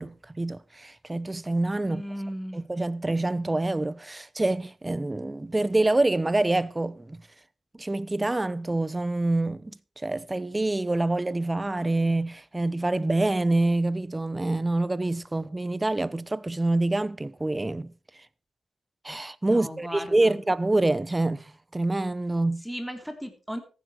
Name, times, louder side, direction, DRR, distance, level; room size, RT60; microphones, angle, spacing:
voice 1, 0.0-2.0 2.5-7.2 7.7-17.9 19.0-22.6, right 2 dB, 20° right, 1.0 m, -26 dB
voice 2, 1.8-2.6 19.5-20.4 22.6-23.6, equal, ahead, 3.4 m, -36 dB
14.5 x 11.0 x 4.6 m
cardioid pair, 60°, 0 cm